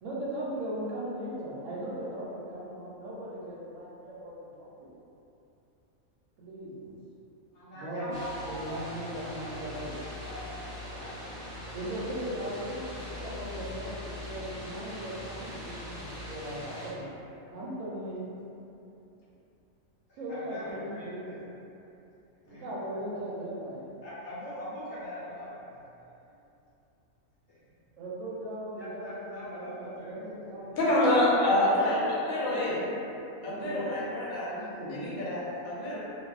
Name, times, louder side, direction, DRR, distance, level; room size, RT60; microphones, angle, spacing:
voice 1, 0.0-4.9 6.4-6.9 7.7-8.1 8.4-9.9 11.7-17.1 17.5-18.3 20.2-21.3 22.5-23.9 28.0-31.0 31.2-31.3 31.6-33.0 33.4-33.8 34.5-35.1, right 1 dB, 75° right, -7 dB, 1.0 m, -38 dB
voice 2, 7.5-9.7 10.0-11.4 20.1-21.4 22.4-22.7 24.0-25.9 27.5-27.6 28.8-30.2 30.7-30.8, left 1 dB, 55° left, -12 dB, 1.2 m, -42 dB
sound 1, 8.1-16.9, left 1 dB, 5° right, 0.9 m, -41 dB
voice 3, 30.8-32.8 33.4-34.5 34.9-36.0, left 1 dB, 85° left, -7 dB, 1.1 m, -27 dB
2.6 x 2.4 x 2.3 m, 2.9 s
omnidirectional pair, 1.4 m